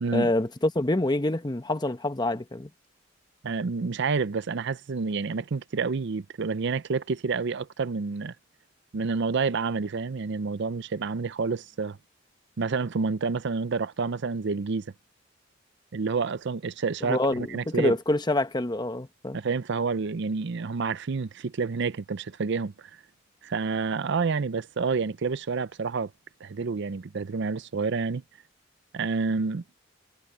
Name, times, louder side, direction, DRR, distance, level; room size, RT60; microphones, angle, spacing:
voice 1, 0.1-2.7 17.1-19.4, left 2 dB, 20° left, 1.0 m, -26 dB
voice 2, 3.4-8.3 8.9-12.0 12.6-14.9 15.9-17.9 19.3-22.7 23.4-26.1 26.4-28.2 28.9-29.6, right 4 dB, 60° right, 0.5 m, -29 dB
head